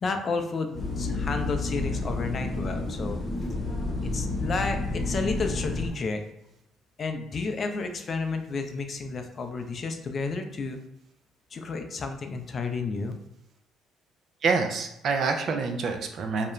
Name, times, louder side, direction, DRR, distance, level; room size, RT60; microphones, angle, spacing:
voice 1, 0.0-3.2 4.1-6.2 7.0-10.8 11.5-13.1, left 4 dB, 45° left, 5 dB, 0.4 m, -31 dB
sound 1, 0.7-5.9, left 2 dB, 20° left, 0.8 m, -30 dB
voice 2, 14.4-16.5, right 4 dB, 60° right, 5 dB, 0.4 m, -27 dB
2.4 x 2.1 x 2.9 m, 0.83 s
supercardioid pair, 70°, 0 cm